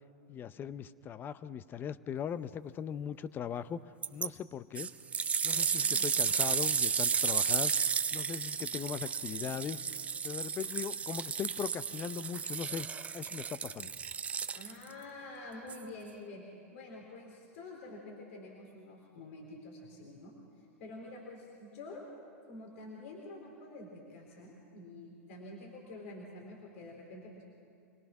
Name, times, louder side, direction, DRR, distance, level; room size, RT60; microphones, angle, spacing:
voice 1, 0.3-3.8 4.1-4.9 5.4-7.7 8.1-9.8 10.2-12.9 13.1-13.9, left 8 dB, 25° left, 16 dB, 0.6 m, -39 dB
sound 1, 4.0-4.3 4.7-14.9 15.7-15.8, right 6 dB, 15° right, 0.5 m, -33 dB
voice 2, 14.5-16.4 16.7-22.0 22.5-27.5, left 2 dB, 60° left, -1 dB, 4.0 m, -48 dB
26.0 x 18.5 x 6.0 m, 2.4 s
hypercardioid pair, 120°, 8 cm